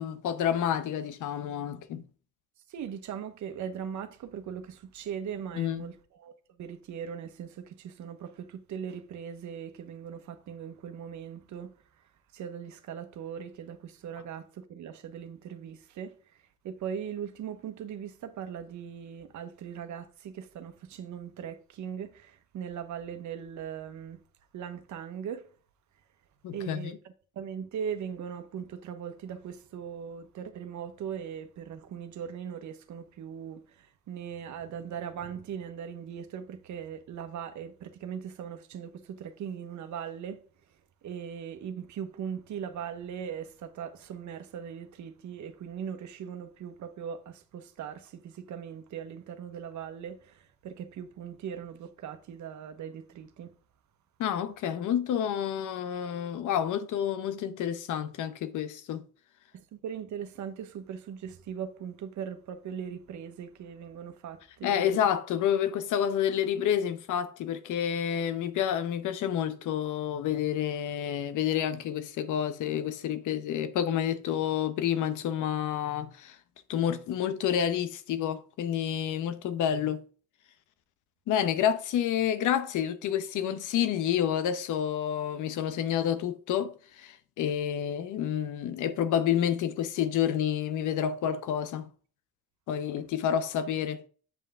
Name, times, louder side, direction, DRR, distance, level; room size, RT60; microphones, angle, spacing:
voice 1, 0.0-2.0 5.5-5.8 26.4-26.9 54.2-59.0 64.6-76.4 76.7-80.0 81.3-91.9 92.7-94.0, left 9 dB, 85° left, 0.9 m, -29 dB
voice 2, 2.7-6.3 6.6-11.7 12.3-16.1 16.6-24.2 24.5-25.5 26.5-26.9 27.3-40.4 41.0-53.5 59.5-65.0, right 8 dB, 75° right, 1.2 m, -39 dB
8.4 x 5.6 x 3.6 m
cardioid pair, 90°, 30 cm